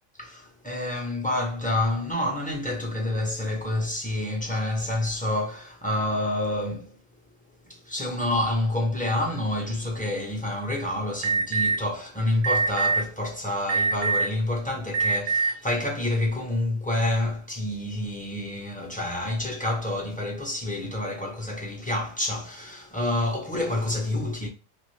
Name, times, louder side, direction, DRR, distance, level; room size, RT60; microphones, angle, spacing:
voice 1, 0.2-7.0 7.7-24.5, left 1 dB, 10° left, 0.5 m, -28 dB
Alarm, 11.2-11.8 12.4-13.0 13.7-14.3 14.9-15.5, right 4 dB, 70° right, 1.0 m, -23 dB
2.5 x 2.5 x 3.1 m
omnidirectional pair, 1.4 m